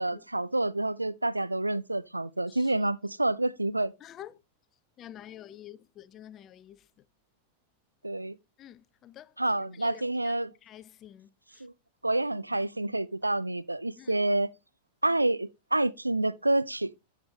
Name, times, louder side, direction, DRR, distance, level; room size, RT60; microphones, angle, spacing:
voice 1, 0.0-3.9 8.0-8.4 9.4-10.5 11.6-11.7 12.0-14.5 15.0-16.9, right 2 dB, 85° right, 0.4 m, -28 dB
voice 2, 4.0-4.4 5.0-7.1 8.6-11.7 13.9-14.3, left 11 dB, 30° left, 0.5 m, -49 dB
12.0 x 5.3 x 2.8 m
figure-of-eight pair, 90°, 0 cm